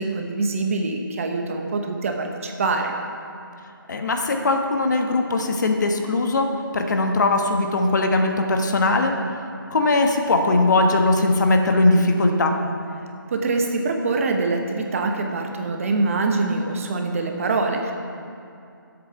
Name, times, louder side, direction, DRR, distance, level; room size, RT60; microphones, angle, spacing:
voice 1, 0.0-2.9 13.3-17.9, right 3 dB, 40° right, 3 dB, 1.1 m, -24 dB
voice 2, 3.9-6.5 6.7-9.1 9.7-12.5, left 2 dB, 55° left, 4 dB, 1.2 m, -20 dB
11.0 x 8.1 x 5.8 m, 2.5 s
figure-of-eight pair, 160°, 12 cm